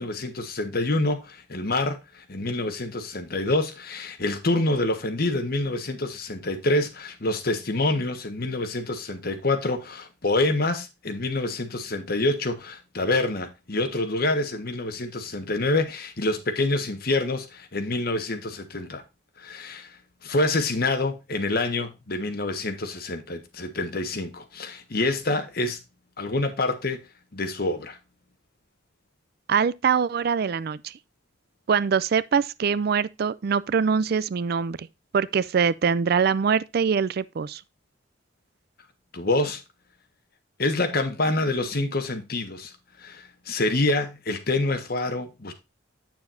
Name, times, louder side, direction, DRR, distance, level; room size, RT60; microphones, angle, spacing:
voice 1, 0.0-19.0 19.4-25.8 26.2-27.0 27.3-28.0 39.1-39.6 40.6-42.7 43.0-45.5, left 2 dB, 55° left, 1.4 m, -27 dB
voice 2, 29.5-30.9 31.7-34.9 35.1-37.6, right 6 dB, 55° right, 0.4 m, -23 dB
8.5 x 6.9 x 2.6 m
head